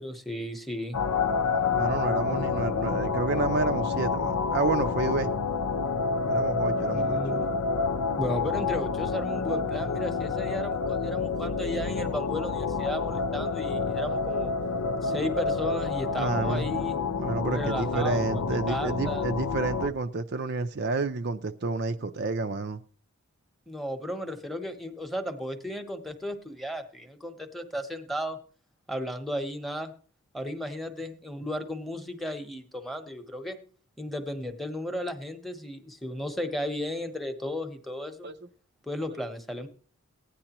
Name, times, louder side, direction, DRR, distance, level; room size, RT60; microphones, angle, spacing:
voice 1, 0.0-1.0 6.9-7.5 8.2-14.5 15.0-17.0 17.5-19.2 23.7-28.4 28.9-29.9 30.3-33.6 34.0-38.3 38.8-39.7, equal, ahead, 0.9 m, -34 dB
sound 1, 0.9-19.9, left 4 dB, 80° left, 0.7 m, -28 dB
voice 2, 1.7-5.3 6.3-7.2 16.2-16.7 17.2-22.8 38.2-38.3, right 3 dB, 50° right, 0.5 m, -29 dB
16.0 x 9.9 x 3.0 m
head